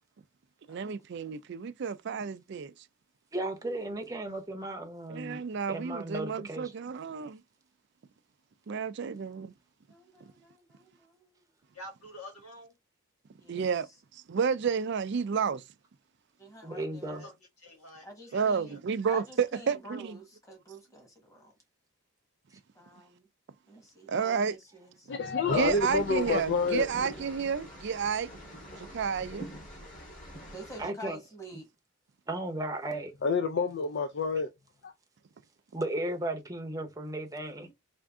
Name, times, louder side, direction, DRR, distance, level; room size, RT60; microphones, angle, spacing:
voice 1, 0.7-2.7 5.1-7.4 8.7-9.5 13.5-13.9 14.1-15.6 18.3-20.2 24.1-24.5 25.5-28.3 28.8-29.4, right 6 dB, 50° right, 0.4 m, -31 dB
voice 2, 3.3-5.4 5.7-6.7 16.6-17.2 30.8-31.2 32.3-33.1 35.7-37.7, right 1 dB, 15° right, 0.7 m, -35 dB
voice 3, 9.9-11.4 13.4-13.6 16.4-17.3 18.0-18.7 19.0-21.5 22.8-23.1 23.7-25.1 30.4-31.7, equal, 15° left, 1.3 m, -48 dB
voice 4, 11.7-12.7 17.2-17.3 17.6-18.4 18.7-18.8, left 1 dB, 90° left, 1.6 m, -47 dB
voice 5, 25.1-26.9 33.2-34.5 34.8-34.9, left 4 dB, 50° left, 0.4 m, -28 dB
sound 1, 25.5-30.8, equal, 35° left, 1.7 m, -44 dB
3.5 x 2.5 x 3.6 m
head